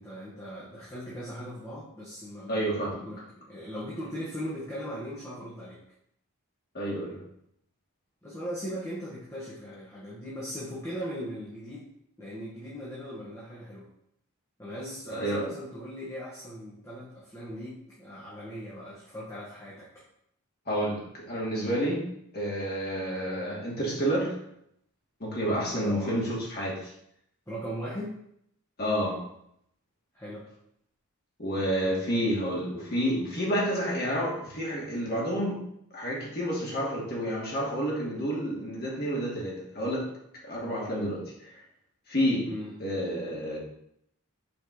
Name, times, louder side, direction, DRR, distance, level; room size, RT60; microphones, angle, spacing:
voice 1, 0.0-2.6 3.0-5.8 8.2-11.9 12.2-13.9 14.6-20.0 25.8-26.2 27.5-28.1 30.1-30.5 42.4-42.8, equal, 10° left, -8 dB, 1.8 m, -39 dB
voice 2, 2.5-3.0 6.7-7.2 15.1-15.5 20.7-22.0 22.3-24.4 25.2-26.9 28.8-29.2 31.4-35.7 35.9-40.1 40.4-41.6 42.1-42.5 42.8-43.6, equal, 45° left, -4 dB, 2.8 m, -29 dB
7.4 x 5.1 x 5.1 m, 0.74 s
head